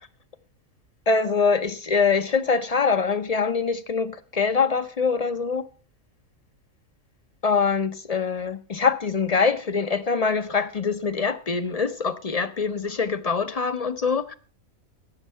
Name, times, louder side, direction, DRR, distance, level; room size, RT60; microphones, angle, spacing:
voice 1, 1.1-5.7 7.4-14.3, left 5 dB, 40° left, 0.6 m, -24 dB
16.5 x 7.2 x 5.5 m
omnidirectional pair, 1.4 m